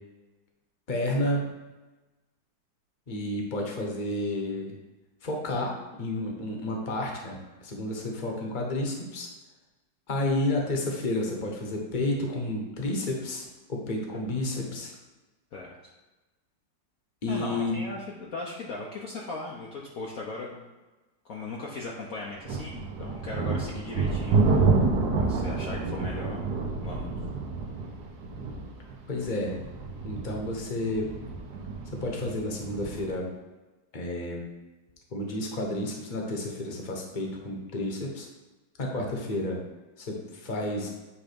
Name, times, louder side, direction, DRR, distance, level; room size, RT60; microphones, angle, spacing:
voice 1, 0.9-1.5 3.1-4.8 5.2-9.3 10.1-14.9 17.2-17.8 25.2-25.3 29.1-29.6 30.0-31.1 31.9-33.3 33.9-34.4 35.1-38.3 38.8-39.6 40.0-40.9, left 1 dB, 30° left, 0 dB, 1.2 m, -31 dB
voice 2, 17.3-20.6 21.2-24.8 25.2-26.4 26.8-27.1, left 3 dB, 55° left, -2 dB, 1.2 m, -38 dB
sound 1, 22.4-33.1, right 4 dB, 65° right, 1.4 m, -28 dB
8.6 x 3.6 x 5.2 m, 1.1 s
omnidirectional pair, 2.0 m